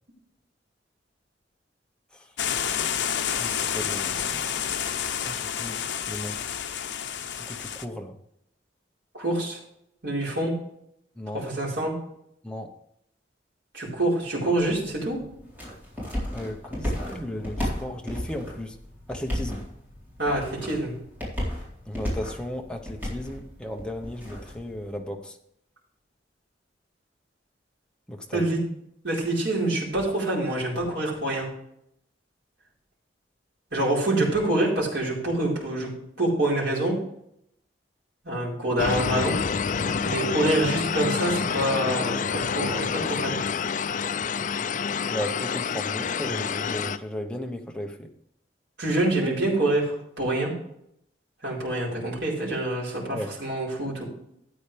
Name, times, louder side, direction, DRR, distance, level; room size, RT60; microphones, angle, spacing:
sound 1, 2.4-7.9, left 8 dB, 75° left, 0.7 m, -29 dB
voice 1, 3.4-4.4 5.2-5.8 6.1-6.4 7.3-8.1 11.2-11.5 12.4-12.7 16.3-18.8 19.1-19.7 21.9-25.4 28.1-28.5 45.1-48.1 53.1-53.3, left 1 dB, 5° left, 3 dB, 1.0 m, -35 dB
voice 2, 9.1-9.6 10.0-10.5 11.3-11.9 13.7-15.2 20.2-20.9 28.3-28.6 29.0-31.5 33.7-35.9 36.2-37.0 38.2-39.3 40.0-43.4 48.8-50.5 51.4-54.1, right 1 dB, 75° right, -5 dB, 4.6 m, -26 dB
sound 2, 14.4-25.0, equal, 10° right, 3.8 m, -34 dB
sound 3, 38.8-47.0, left 6 dB, 45° left, 0.4 m, -28 dB
13.0 x 9.0 x 3.4 m, 0.75 s
head